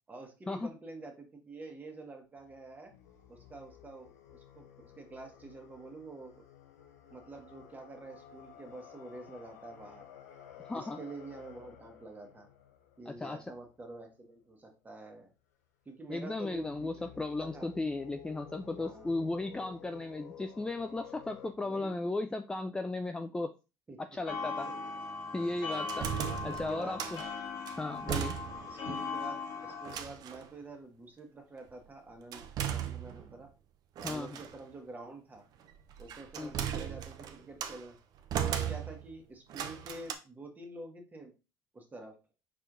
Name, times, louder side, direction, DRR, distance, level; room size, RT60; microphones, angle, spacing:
voice 1, 0.1-2.9 3.3-6.4 7.1-10.0 10.6-12.5 13.0-15.3 15.8-17.1 17.4-17.7 18.8-19.1 21.6-22.0 23.9-24.0 24.6-24.7 26.3-27.0 28.7-33.5 34.0-35.4 36.0-38.0 38.5-41.3 41.7-42.2, right 2 dB, 20° right, 3 dB, 1.4 m, -48 dB
sound 1, 2.4-14.3 16.2-21.5, left 10 dB, 90° left, 0.6 m, -54 dB
voice 2, 13.1-13.4 16.1-23.5 24.0-24.7 25.3-26.1 26.4-27.2 27.8-28.3 34.0-34.4 36.4-36.5, left 2 dB, 10° left, 7 dB, 0.3 m, -36 dB
sound 2, 24.3-30.0, left 4 dB, 60° left, 1.6 m, -39 dB
sound 3, 25.7-27.3 27.7-28.8 29.1-29.2 29.8-30.5 32.3-33.4 34.0-34.6 35.7-37.8 38.3-39.1 39.5-40.1, right 9 dB, 50° right, 0.6 m, -37 dB
4.5 x 4.1 x 2.6 m, 0.29 s
hypercardioid pair, 80°, 8 cm